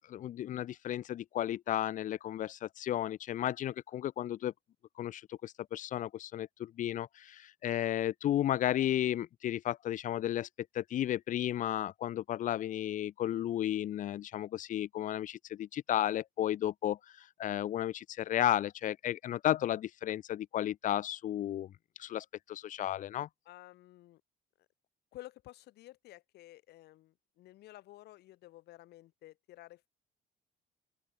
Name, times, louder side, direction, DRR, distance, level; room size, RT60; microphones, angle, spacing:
voice 1, 0.1-4.5 5.0-10.5 10.7-21.7 22.0-23.3, left 12 dB, 50° left, 0.5 m, -33 dB
voice 2, 23.5-24.2 25.1-29.9, left 16 dB, 75° left, 1.9 m, -53 dB
open air
cardioid pair, 110°, 17 cm